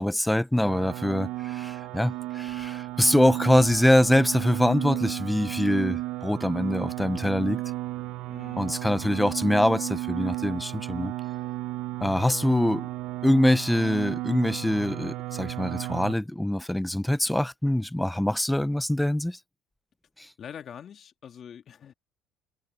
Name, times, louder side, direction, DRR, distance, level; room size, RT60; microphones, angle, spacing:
voice 1, 0.0-7.6 8.6-11.1 12.0-12.9 13.2-19.4 20.2-20.3, left 1 dB, 5° left, 0.8 m, -24 dB
sound 1, 0.6-16.1, right 17 dB, 75° right, 0.9 m, -34 dB
voice 2, 8.3-8.7 20.4-21.9, left 8 dB, 45° left, 2.6 m, -44 dB
cardioid pair, 105°, 0 cm